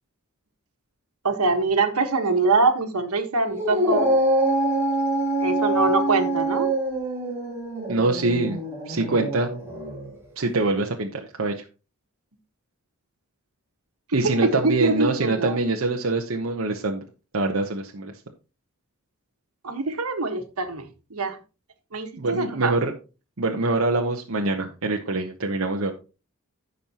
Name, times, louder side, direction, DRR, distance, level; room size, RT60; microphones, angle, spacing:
voice 1, 1.2-4.1 5.4-6.7 14.4-15.6 19.6-21.4 21.9-22.7, right 3 dB, 80° right, 6 dB, 1.5 m, -24 dB
Dog, 3.5-10.1, right 1 dB, 10° right, 2.2 m, -25 dB
voice 2, 7.9-8.6 8.9-9.5 10.4-11.5 14.1-17.0 17.3-18.1 22.2-22.9 23.4-25.9, right 2 dB, 60° right, 1 dB, 1.0 m, -24 dB
15.5 x 5.4 x 2.9 m, 0.32 s
head